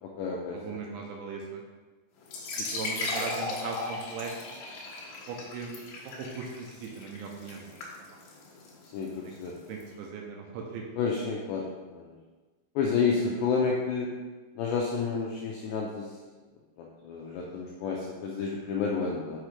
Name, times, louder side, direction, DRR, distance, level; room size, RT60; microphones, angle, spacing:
voice 1, 0.0-0.6 8.9-9.5 11.0-11.7 11.9-12.1 12.8-14.1 14.6-16.1 16.8-19.4, left 5 dB, 90° left, -2 dB, 2.5 m, -30 dB
voice 2, 0.5-1.6 2.6-4.3 5.3-5.9 6.2-7.8 9.2-9.4 9.7-10.8, right 5 dB, 80° right, 0 dB, 2.8 m, -38 dB
sound 1, 2.2-9.8, left 2 dB, 70° left, 2.8 m, -37 dB
6.3 x 6.1 x 3.3 m, 1.3 s
omnidirectional pair, 5.7 m